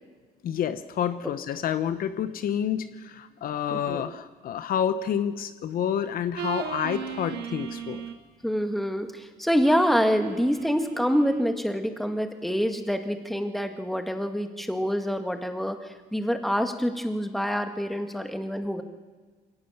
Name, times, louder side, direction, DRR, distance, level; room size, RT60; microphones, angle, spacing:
voice 1, 0.4-8.0, left 9 dB, 60° left, 11 dB, 1.0 m, -29 dB
voice 2, 3.7-4.0 8.4-18.8, equal, ahead, 6 dB, 1.8 m, -26 dB
sound 1, 6.4-8.3 9.6-11.4, right 9 dB, 75° right, 1.7 m, -37 dB
23.0 x 18.0 x 7.2 m, 1.4 s
cardioid pair, 110°, 17 cm